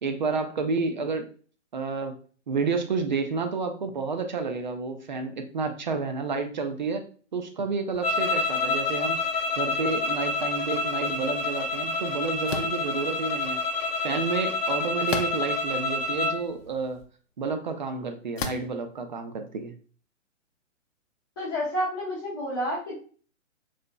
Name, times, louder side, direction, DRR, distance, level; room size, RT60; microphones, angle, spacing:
voice 1, 0.0-1.3 1.7-2.2 2.5-7.0 7.3-9.2 9.6-13.6 14.0-17.0 17.4-19.7, right 4 dB, 40° right, 7 dB, 0.5 m, -30 dB
sound 1, 8.0-16.4, left 3 dB, 50° left, 1.2 m, -28 dB
sound 2, 12.5-12.8 15.1-15.6 16.3-16.4 18.4-18.8, left 5 dB, 75° left, 0.6 m, -32 dB
voice 2, 21.4-22.9, equal, 20° left, -7 dB, 0.6 m, -29 dB
4.0 x 2.8 x 2.2 m, 0.41 s
figure-of-eight pair, 130°, 39 cm